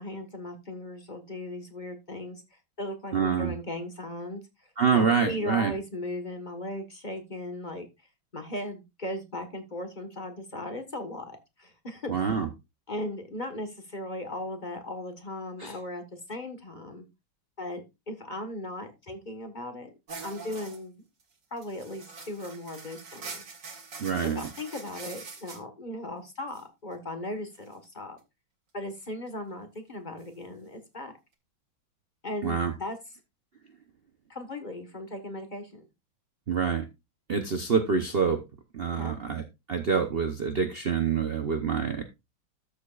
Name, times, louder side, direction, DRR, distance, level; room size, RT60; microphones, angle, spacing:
voice 1, 0.0-2.4 2.8-4.4 4.9-7.9 8.3-12.1 12.9-17.1 17.6-19.9 20.2-21.0 21.5-23.4 24.2-28.2 28.7-31.1 32.2-33.0 34.3-35.9 38.9-39.2, left 1 dB, 25° left, 6 dB, 1.3 m, -37 dB
voice 2, 3.1-3.5 4.8-5.7 12.1-12.5 15.6-15.7 24.0-24.5 32.4-32.7 36.5-36.8 37.3-38.4 38.7-39.4 39.7-42.0, right 6 dB, 75° right, 6 dB, 0.5 m, -26 dB
sound 1, 20.1-20.8 21.2-21.3 21.6-25.6 26.5-26.6 27.7-27.8 30.2-30.3, right 4 dB, 40° right, 1.8 m, -44 dB
13.0 x 7.0 x 2.4 m, 0.23 s
omnidirectional pair, 2.3 m